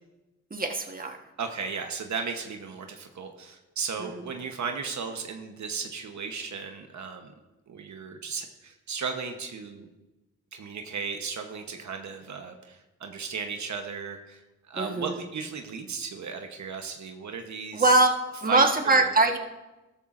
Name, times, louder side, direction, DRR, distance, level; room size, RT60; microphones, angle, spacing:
voice 1, 0.5-1.2 4.0-4.1 14.7-15.2 17.7-18.1 18.4-19.4, right 2 dB, 30° right, 4 dB, 1.3 m, -22 dB
voice 2, 1.4-7.3 7.7-9.9 10.5-14.4 14.7-18.0 18.5-19.1, right 5 dB, 75° right, 4 dB, 1.0 m, -35 dB
13.0 x 12.5 x 2.5 m, 1.1 s
cardioid pair, 70°, 29 cm